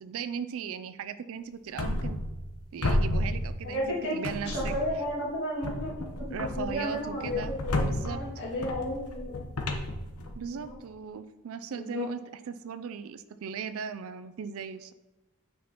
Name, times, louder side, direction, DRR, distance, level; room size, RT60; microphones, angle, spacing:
voice 1, 0.0-2.2 2.7-4.7 6.3-7.5 7.8-8.2 10.4-14.9, right 6 dB, 65° right, 12 dB, 0.4 m, -38 dB
sound 1, 1.8-2.5 2.8-3.9 4.2-5.1 5.6-10.7, left 1 dB, 80° left, 0.9 m, -32 dB
voice 2, 3.6-4.2 4.4-9.4 10.6-10.7 11.7-12.1, left 1 dB, 50° left, -6 dB, 2.2 m, -33 dB
9.4 x 5.6 x 2.9 m, 1.1 s
head